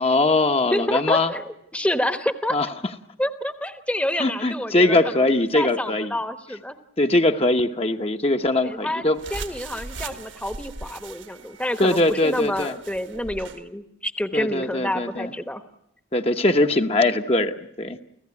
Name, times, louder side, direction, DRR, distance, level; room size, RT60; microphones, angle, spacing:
voice 1, 0.0-1.3 2.5-2.7 4.2-6.1 7.0-9.2 11.8-12.7 14.3-15.3 16.1-18.0, left 2 dB, 30° left, 6 dB, 0.9 m, -21 dB
voice 2, 0.7-2.6 3.2-5.3 5.5-6.8 8.6-15.6, left 1 dB, 5° left, 9 dB, 1.0 m, -28 dB
sound 1, 9.2-13.6, right 4 dB, 70° right, 1.6 m, -39 dB
30.0 x 15.5 x 9.6 m, 0.79 s
head